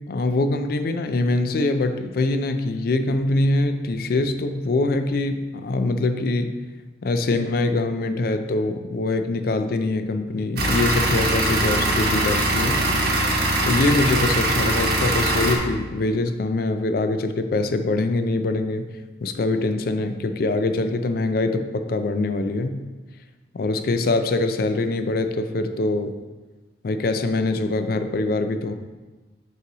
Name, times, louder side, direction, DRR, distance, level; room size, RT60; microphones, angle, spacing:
voice 1, 0.1-6.6 7.0-12.8 13.6-18.9 19.2-22.8 23.5-26.2 26.8-28.7, left 2 dB, 55° left, 9 dB, 0.4 m, -23 dB
sound 1, 10.6-15.6, right 1 dB, 55° right, 1.0 m, -21 dB
5.7 x 4.6 x 3.8 m, 1.3 s
head